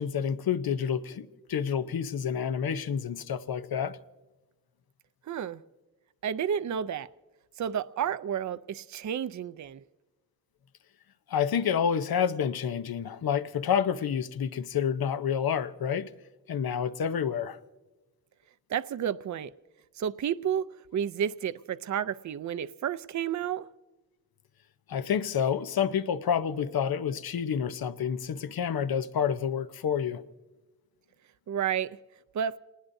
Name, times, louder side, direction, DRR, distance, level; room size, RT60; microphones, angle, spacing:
voice 1, 0.0-4.0 11.3-16.1 16.5-17.6 24.9-30.2, left 8 dB, 80° left, 0.8 m, -29 dB
voice 2, 5.3-5.6 6.2-7.1 7.6-9.8 18.7-19.5 20.0-20.7 20.9-23.7 31.5-32.0 32.3-32.5, right 8 dB, 55° right, 0.5 m, -31 dB
28.0 x 19.5 x 2.7 m
wide cardioid pair, 85°, 36 cm